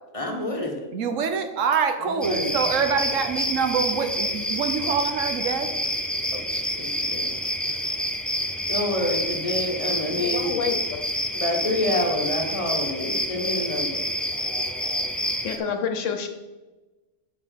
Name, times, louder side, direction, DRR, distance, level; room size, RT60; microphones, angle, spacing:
voice 1, 0.1-0.8 2.0-2.5 6.3-7.3 8.7-10.5 11.4-14.0, left 1 dB, 25° left, 0 dB, 1.4 m, -28 dB
voice 2, 0.9-5.7, right 6 dB, 70° right, 7 dB, 1.2 m, -25 dB
sound 1, 2.2-15.6, equal, ahead, 0.4 m, -28 dB
voice 3, 10.1-10.8 15.4-16.3, left 6 dB, 65° left, 6 dB, 1.2 m, -28 dB
7.7 x 5.5 x 5.9 m, 1.2 s
omnidirectional pair, 1.4 m